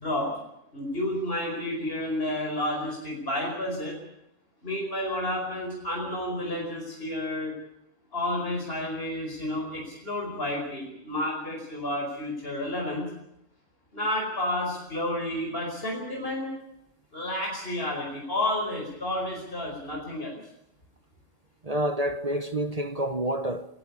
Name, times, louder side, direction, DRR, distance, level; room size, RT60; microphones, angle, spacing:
voice 1, 0.7-4.0 4.6-7.5 8.1-13.1 13.9-16.5 17.1-20.4, left 1 dB, 50° left, 5.4 m, -31 dB
voice 2, 21.6-23.7, right 1 dB, 35° right, 1.1 m, -28 dB
27.5 x 12.0 x 9.8 m
omnidirectional pair, 1.3 m